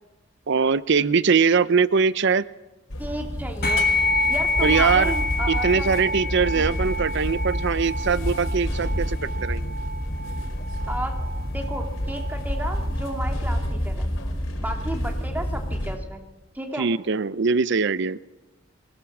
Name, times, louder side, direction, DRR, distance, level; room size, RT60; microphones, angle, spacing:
voice 1, 0.5-2.4 4.6-5.1 5.5-9.7 16.8-18.2, right 5 dB, 65° right, 17 dB, 0.7 m, -22 dB
sound 1, 2.9-16.0, equal, 80° left, 4.4 m, -29 dB
voice 2, 3.0-6.2 6.5-6.7 10.9-11.2 11.5-14.1 14.6-16.2 16.5-16.9, right 1 dB, 10° right, 3 dB, 2.5 m, -33 dB
sound 2, 3.6-13.3, left 2 dB, 50° left, 1.6 m, -28 dB
23.5 x 18.5 x 7.3 m, 1.1 s
head